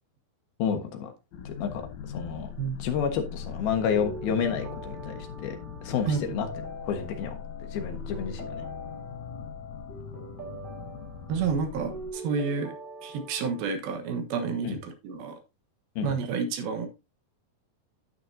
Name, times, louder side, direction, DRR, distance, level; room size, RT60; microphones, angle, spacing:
voice 1, 0.6-1.1 1.5-1.8 2.1-2.5 2.8-5.1 5.4-5.6 5.8-6.5 6.8-7.4 7.7-8.6 14.6-14.8 16.0-16.1, left 7 dB, 85° left, 3.2 m, -30 dB
sound 1, 1.3-12.1, left 7 dB, 65° left, 2.0 m, -41 dB
sound 2, 3.4-13.6, right 1 dB, 50° right, 0.6 m, -43 dB
voice 2, 6.1-6.4 11.3-12.8 13.0-15.4 16.0-16.9, right 5 dB, 85° right, 3.1 m, -30 dB
9.9 x 9.3 x 2.7 m
omnidirectional pair, 4.2 m